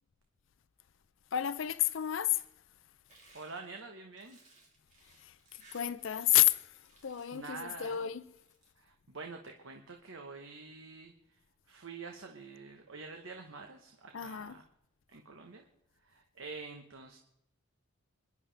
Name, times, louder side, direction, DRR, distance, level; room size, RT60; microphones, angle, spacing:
voice 1, 1.3-2.4 5.2-5.3 5.7-6.7 7.0-8.2 14.1-14.6, left 13 dB, 65° left, 0.5 m, -30 dB
sound 1, 3.1-6.5 6.7-7.5 8.2-8.7, right 2 dB, 35° right, 3.2 m, -62 dB
voice 2, 3.3-4.4 7.3-8.0 8.8-11.4 11.7-14.6 15.1-15.7 16.0-17.2, right 4 dB, 70° right, 1.1 m, -47 dB
26.5 x 11.0 x 3.4 m
head